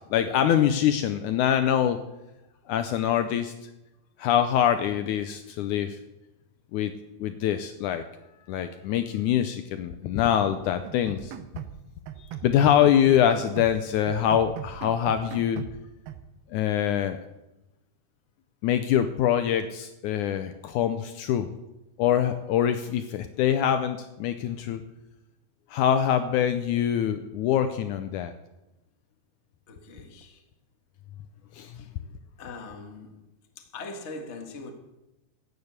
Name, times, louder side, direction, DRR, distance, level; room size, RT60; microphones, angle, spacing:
voice 1, 0.1-2.0 2.7-3.5 4.2-6.0 6.7-6.9 7.2-8.0 8.5-11.4 12.2-15.6 16.5-17.2 18.6-21.5 22.0-24.8 25.7-28.3 31.5-31.7, left 10 dB, 85° left, 1.7 m, -24 dB
sound 1, 10.8-11.8 12.1-13.8 14.1-15.8 16.1-16.2, right 10 dB, 80° right, 2.7 m, -40 dB
voice 2, 29.7-30.4 31.7-31.9 32.4-33.2 33.5-34.7, left 3 dB, 45° left, 0.8 m, -41 dB
13.5 x 8.9 x 8.1 m
omnidirectional pair, 4.3 m